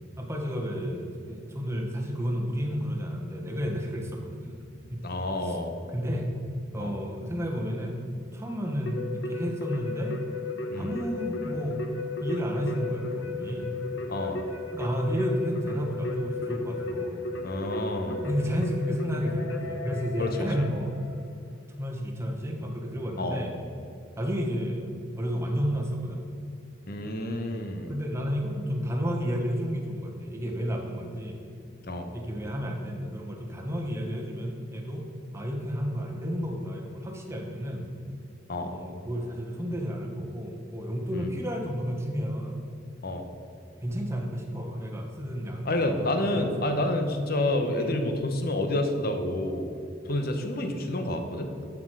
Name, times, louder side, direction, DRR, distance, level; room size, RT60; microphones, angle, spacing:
voice 1, 0.2-4.6 4.9-5.0 5.4-5.6 5.9-6.3 6.7-10.2 10.7-11.9 12.2-13.7 14.7-17.3 18.2-21.0 21.8-23.5 24.2-26.2 27.9-31.5 32.1-35.1 35.3-37.9 38.6-42.7 43.8-46.8 47.8-48.0, equal, 15° right, 0 dB, 1.3 m, -31 dB
voice 2, 5.0-5.7 6.8-6.9 10.7-10.9 14.1-14.4 17.4-18.2 20.2-20.5 23.2-23.4 26.9-27.9 31.8-32.1 38.5-38.7 41.1-41.3 43.0-43.2 45.6-49.7 50.1-51.5, left 1 dB, 50° left, 5 dB, 1.1 m, -29 dB
Keyboard (musical), 8.9-21.3, left 3 dB, 80° left, 1.0 m, -35 dB
12.0 x 6.2 x 4.9 m, 2.7 s
head